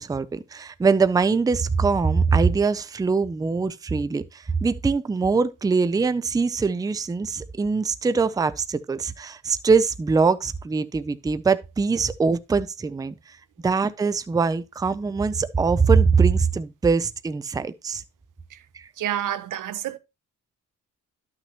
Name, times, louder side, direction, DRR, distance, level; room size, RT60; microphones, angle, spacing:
voice 1, 0.0-13.2 13.6-18.0 18.7-18.9, right 4 dB, 10° right, 0.4 m, -22 dB
voice 2, 19.0-20.0, right 11 dB, 85° right, 0.8 m, -29 dB
12.0 x 6.1 x 2.8 m
cardioid pair, 125°, 31 cm